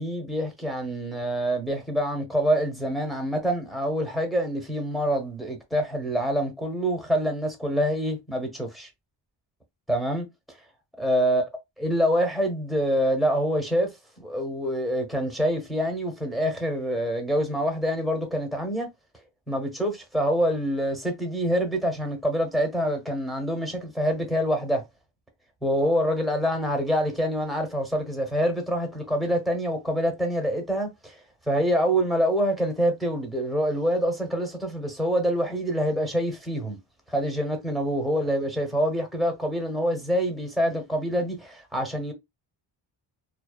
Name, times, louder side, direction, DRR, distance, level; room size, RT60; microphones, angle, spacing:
voice 1, 0.0-8.9 9.9-10.2 11.0-11.4 11.8-13.9 14.2-18.9 19.5-24.8 25.6-31.2 31.5-36.8 37.1-42.1, equal, ahead, 0.9 m, -26 dB
2.4 x 2.2 x 2.3 m
cardioid pair, 85°, 46 cm